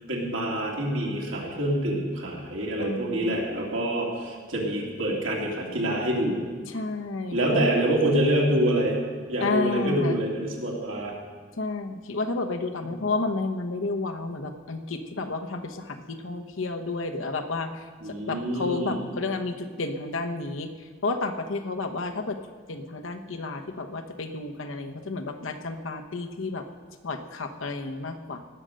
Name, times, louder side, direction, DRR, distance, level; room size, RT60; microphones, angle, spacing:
voice 1, 0.0-6.4 7.3-9.0 9.3-11.1 18.0-19.0, right 1 dB, 80° right, -2 dB, 2.7 m, -26 dB
voice 2, 2.8-3.4 6.7-7.7 9.4-10.2 11.6-20.7 21.0-22.4 22.7-26.6 27.0-28.4, left 3 dB, 90° left, 5 dB, 1.0 m, -31 dB
18.0 x 6.7 x 6.4 m, 1.5 s
head